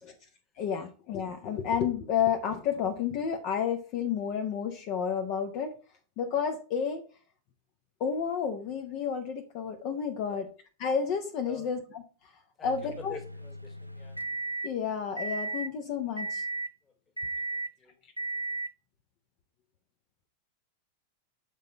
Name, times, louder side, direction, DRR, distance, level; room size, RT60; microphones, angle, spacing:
voice 1, 0.6-5.7 6.2-7.0 8.0-10.5 10.8-12.3 12.6-13.2 14.6-16.4, left 7 dB, 45° left, 5 dB, 0.9 m, -31 dB
voice 2, 12.6-14.2 17.8-17.9, left 5 dB, 20° left, 7 dB, 1.6 m, -47 dB
sound 1, 12.6-14.7 15.2-15.7 16.2-16.7 17.2-17.7 18.2-18.7, right 2 dB, 85° right, 0.4 m, -35 dB
8.1 x 3.9 x 5.4 m, 0.38 s
figure-of-eight pair, 90°, 0 cm